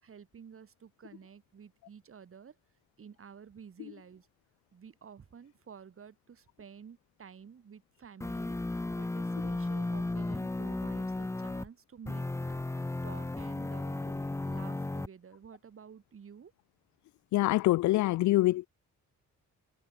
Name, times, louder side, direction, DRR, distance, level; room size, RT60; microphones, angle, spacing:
voice 1, 0.0-2.6 3.0-4.3 4.7-16.5, right 7 dB, 45° right, 4.5 m, -52 dB
sound 1, 8.2-11.7 12.1-15.1, left 2 dB, 10° left, 0.7 m, -34 dB
voice 2, 17.3-18.7, left 17 dB, 70° left, 0.5 m, -25 dB
cardioid pair, 90°, 30 cm